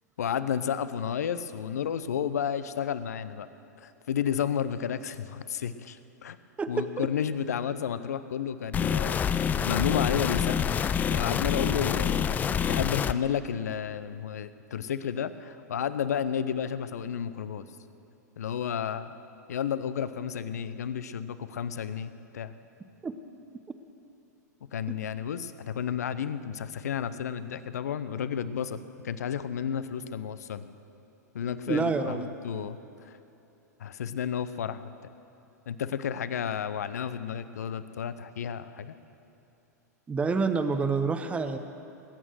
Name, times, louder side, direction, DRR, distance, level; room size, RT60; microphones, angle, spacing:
voice 1, 0.2-3.5 3.8-6.4 6.7-10.7 11.1-17.7 18.4-19.1 19.5-22.5 24.7-28.8 29.0-30.7 31.3-32.2 32.4-33.2 33.8-34.9 35.7-38.9, left 8 dB, 65° left, 14 dB, 0.7 m, -32 dB
voice 2, 6.6-7.1 23.0-23.1 31.7-32.3 40.1-41.6, right 4 dB, 15° right, 9 dB, 0.7 m, -28 dB
sound 1, 8.7-13.1, left 8 dB, 20° left, 0.4 m, -27 dB
20.5 x 9.0 x 6.5 m, 2.8 s
figure-of-eight pair, 100°, 9 cm